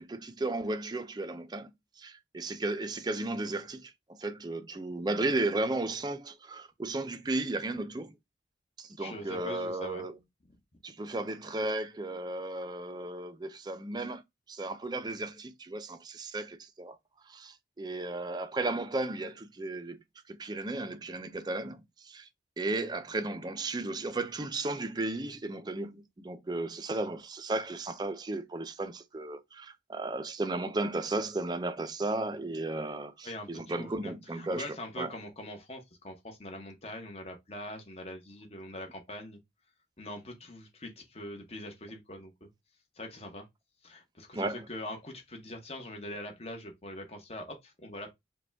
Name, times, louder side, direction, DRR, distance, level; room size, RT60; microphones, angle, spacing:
voice 1, 0.0-1.7 2.0-8.1 8.8-10.1 10.8-14.2 14.5-17.0 17.3-20.0 20.3-22.3 22.6-35.1 44.3-44.6, right 2 dB, 20° right, 0.4 m, -34 dB
voice 2, 9.0-10.0 33.2-39.4 40.0-42.5 43.0-43.4 43.8-48.1, left 1 dB, 35° left, 0.9 m, -43 dB
5.0 x 2.3 x 3.4 m
head